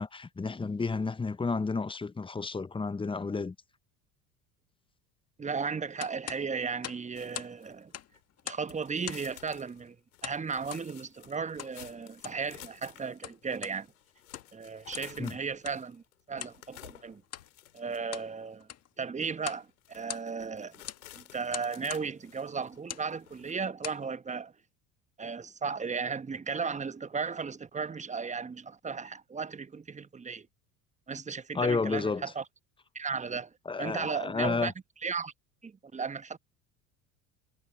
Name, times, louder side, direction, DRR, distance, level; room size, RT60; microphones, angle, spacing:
voice 1, 0.0-3.5 15.2-15.4 31.5-32.2 33.7-34.7, left 4 dB, 10° left, 1.0 m, -31 dB
voice 2, 5.4-7.9 8.4-10.0 10.2-13.9 14.5-16.0 16.3-17.2 17.7-18.7 19.0-20.8 21.1-24.5 25.2-30.5 31.1-32.4 32.9-33.5 33.8-34.7 35.0-35.3 35.6-36.4, right 5 dB, 15° right, 1.1 m, -35 dB
sound 1, 6.0-7.6 7.8-8.7 9.0-9.4 10.2-10.9 11.6-11.8 12.1-12.5 13.0-13.8 14.2-14.6 14.9-15.2 15.6-15.8 16.4-16.6 17.2-17.5 17.9-18.3 18.6-18.9 19.4-19.7 19.9-20.5 20.9-21.1 21.5-22.1 22.8-23.1 23.6-24.0, left 10 dB, 35° left, 1.9 m, -42 dB
sound 2, 7.1-8.4 8.7-18.3 18.8-18.9 19.2-19.3 19.7-23.5, left 13 dB, 75° left, 4.8 m, -53 dB
figure-of-eight pair, 70°, 43 cm